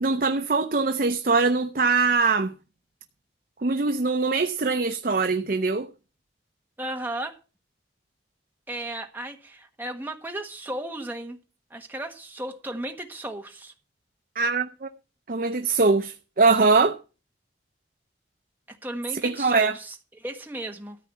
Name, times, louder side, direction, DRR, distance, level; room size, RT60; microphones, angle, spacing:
voice 1, 0.0-2.5 3.6-5.9 14.4-14.9 15.3-17.0 19.2-19.7, right 4 dB, 50° right, 0.6 m, -22 dB
voice 2, 6.8-7.4 8.7-11.4 11.7-13.7 18.7-21.0, right 1 dB, 10° right, 1.4 m, -35 dB
13.5 x 4.7 x 8.3 m
head